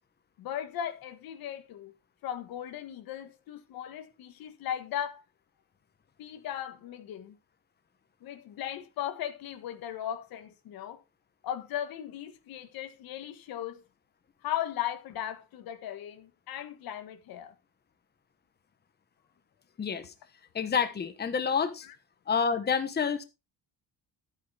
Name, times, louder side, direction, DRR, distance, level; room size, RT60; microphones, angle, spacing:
voice 1, 0.4-1.9 2.2-5.2 6.2-7.4 8.2-11.0 11.4-13.8 14.4-17.5 21.8-21.9, left 11 dB, 85° left, 1.6 m, -37 dB
voice 2, 19.8-20.1 20.5-21.9 22.3-23.2, left 6 dB, 30° left, 1.2 m, -28 dB
11.5 x 8.8 x 3.4 m
cardioid pair, 130°, 35 cm